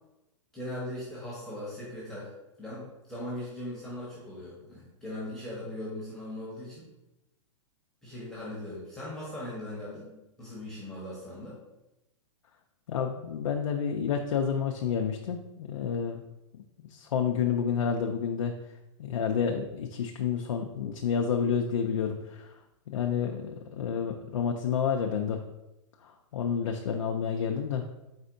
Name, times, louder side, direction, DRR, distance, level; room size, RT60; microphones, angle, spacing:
voice 1, 0.5-2.3 2.6-6.9 8.0-11.6, left 1 dB, 5° left, -7 dB, 1.2 m, -39 dB
voice 2, 12.9-16.2 16.5-18.6 19.0-22.6 22.9-25.4 26.0-27.9, left 7 dB, 85° left, 3 dB, 0.5 m, -30 dB
4.3 x 4.1 x 2.6 m, 0.96 s
hypercardioid pair, 130°, 16 cm